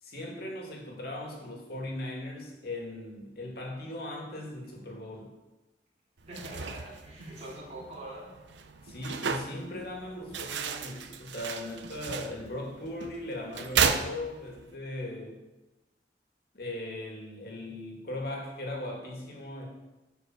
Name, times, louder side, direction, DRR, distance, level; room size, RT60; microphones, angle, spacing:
voice 1, 0.0-5.3 8.8-15.4 16.5-19.7, left 1 dB, 60° left, -1 dB, 2.6 m, -38 dB
sound 1, 6.2-14.7, right 6 dB, 80° right, 0.7 m, -34 dB
voice 2, 6.3-8.3, right 1 dB, 35° right, -7 dB, 3.4 m, -43 dB
10.5 x 5.7 x 6.3 m, 1.1 s
head